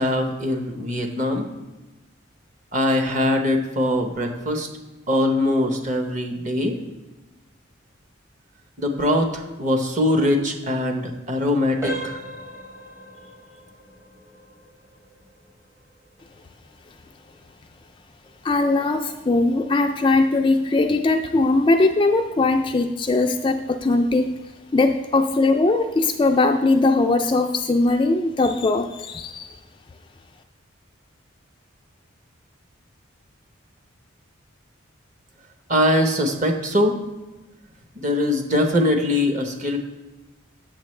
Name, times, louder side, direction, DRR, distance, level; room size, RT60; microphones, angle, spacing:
voice 1, 0.0-1.5 2.7-4.7 5.1-6.8 8.8-12.2 35.7-36.9 38.0-39.8, left 1 dB, 35° right, 4 dB, 1.0 m, -22 dB
sound 1, 11.8-22.5 22.8-23.1 23.7-23.8 24.3-24.4, right 2 dB, 15° right, 0.8 m, -40 dB
voice 2, 18.4-24.4 24.7-29.6, left 2 dB, 25° left, 5 dB, 0.3 m, -20 dB
8.9 x 7.1 x 3.2 m, 1.1 s
head